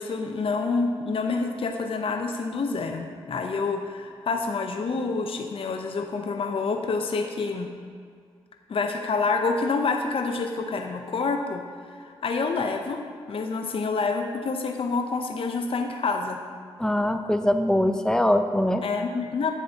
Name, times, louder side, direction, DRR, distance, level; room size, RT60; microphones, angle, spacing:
voice 1, 0.0-7.7 8.7-11.6 11.9-13.0 13.3-16.4 18.8-19.5, left 4 dB, 50° left, 4 dB, 0.7 m, -27 dB
voice 2, 16.8-18.8, left 1 dB, 5° left, 8 dB, 0.6 m, -22 dB
9.6 x 7.3 x 2.8 m, 2.1 s
supercardioid pair, 40°, 12 cm